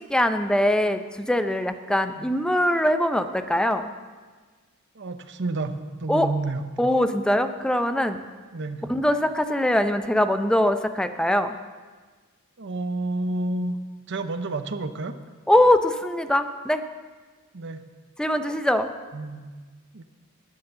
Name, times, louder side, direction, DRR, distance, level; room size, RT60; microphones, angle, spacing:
voice 1, 0.1-3.9 6.1-6.3 6.8-8.2 8.9-11.6 15.5-16.8 18.2-18.9, left 1 dB, 5° left, 9 dB, 0.5 m, -22 dB
voice 2, 5.0-6.7 8.5-9.0 12.6-15.1 17.5-17.8 19.1-19.4 19.9-20.0, right 2 dB, 60° right, 9 dB, 0.8 m, -30 dB
10.5 x 9.4 x 6.7 m, 1.4 s
head